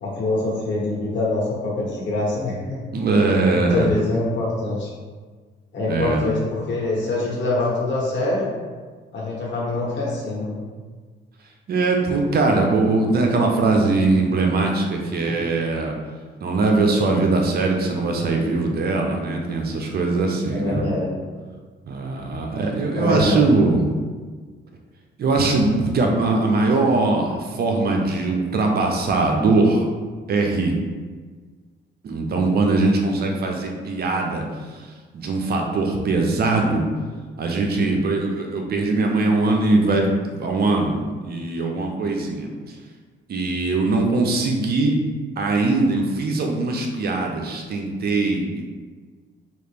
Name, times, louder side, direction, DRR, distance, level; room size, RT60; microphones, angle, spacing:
voice 1, 0.0-2.8 3.5-4.9 5.7-8.5 9.1-10.6 20.5-21.2 22.9-23.4, left 2 dB, 65° left, -5 dB, 1.2 m, -24 dB
voice 2, 2.9-3.9 5.9-6.2 11.7-15.9 16.4-20.8 21.9-23.9 25.2-29.8 30.3-30.7 32.0-34.4 35.1-36.9 37.4-42.5 43.3-45.0 45.4-48.7, right 3 dB, 55° right, 2 dB, 0.6 m, -21 dB
3.1 x 2.4 x 3.4 m, 1.5 s
cardioid pair, 90°, 20 cm